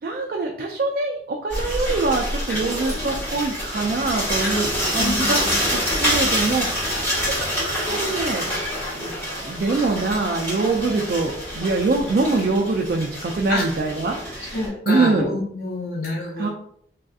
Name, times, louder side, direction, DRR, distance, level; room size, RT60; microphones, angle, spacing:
voice 1, 0.0-5.4 5.7-7.0 7.6-8.5 8.9-14.6 14.9-15.3 16.4-16.5, right 3 dB, 55° right, 1 dB, 0.3 m, -24 dB
sound 1, 1.5-14.7, equal, 15° left, 1.3 m, -26 dB
voice 2, 5.0-5.5 13.5-13.6 14.5-16.5, left 2 dB, 55° left, -1 dB, 0.5 m, -27 dB
3.3 x 2.6 x 2.3 m, 0.66 s
head